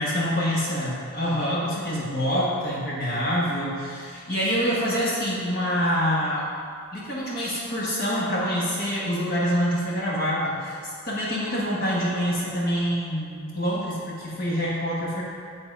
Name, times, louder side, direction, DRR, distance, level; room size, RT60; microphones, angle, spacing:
voice 1, 0.0-6.5 6.9-15.2, equal, 40° left, -6 dB, 1.2 m, -26 dB
8.8 x 3.7 x 4.0 m, 2.3 s
head